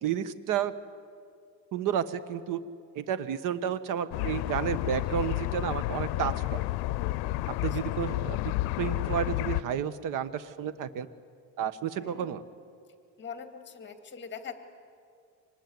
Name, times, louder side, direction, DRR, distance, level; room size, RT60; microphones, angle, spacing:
voice 1, 0.0-0.7 1.7-2.6 2.9-6.6 7.5-11.1 11.6-12.4, right 9 dB, 55° right, 14 dB, 1.3 m, -31 dB
a murder of jackdaws, 4.1-9.6, left 18 dB, 75° left, 0.7 m, -31 dB
voice 2, 12.0-12.3 13.2-14.5, left 6 dB, 30° left, 7 dB, 2.3 m, -42 dB
25.5 x 20.0 x 9.6 m, 2.2 s
cardioid pair, 150°, 38 cm